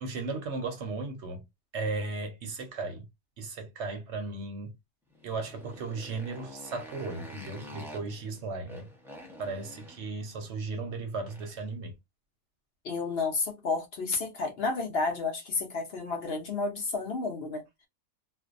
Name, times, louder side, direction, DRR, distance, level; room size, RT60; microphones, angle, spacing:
voice 1, 0.0-1.4 1.7-3.1 3.4-4.7 5.2-8.9 9.4-11.9, right 3 dB, 65° right, 0.8 m, -36 dB
Motorcycle, 5.1-11.7, left 1 dB, 5° right, 0.4 m, -48 dB
voice 2, 12.8-17.6, left 4 dB, 55° left, 0.8 m, -31 dB
2.5 x 2.1 x 2.4 m
omnidirectional pair, 1.4 m